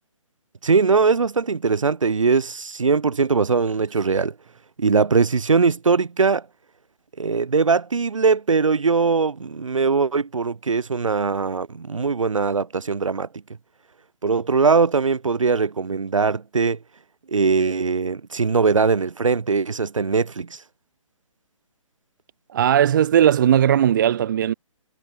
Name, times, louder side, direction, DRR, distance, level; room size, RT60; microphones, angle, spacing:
voice 1, 0.6-4.3 4.8-6.4 7.2-13.3 14.2-16.8 17.3-20.6, right 4 dB, 70° right, 1.2 m, -21 dB
voice 2, 22.5-24.5, right 10 dB, 35° right, 0.7 m, -17 dB
figure-of-eight pair, 140°, 17 cm